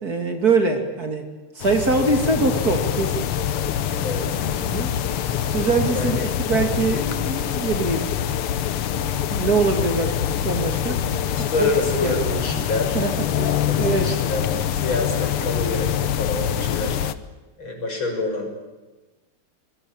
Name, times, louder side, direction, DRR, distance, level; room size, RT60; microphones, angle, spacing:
voice 1, 0.0-1.3 1.6-3.3 4.5-5.0 5.5-8.1 9.3-11.0 11.4-11.7 12.0-12.7 12.9-13.1 13.4-13.5 13.8-14.1, right 4 dB, 45° right, 6 dB, 3.1 m, -23 dB
sound 1, 1.6-17.1, left 10 dB, 90° left, 2.0 m, -25 dB
sound 2, 1.7-11.5, left 6 dB, 30° left, 2.0 m, -36 dB
voice 2, 4.0-4.4 5.9-6.2 11.3-13.0 13.4-14.4 14.7-17.0 17.6-18.5, left 2 dB, 60° left, 3 dB, 7.3 m, -27 dB
26.0 x 22.5 x 9.0 m, 1.2 s
omnidirectional pair, 2.4 m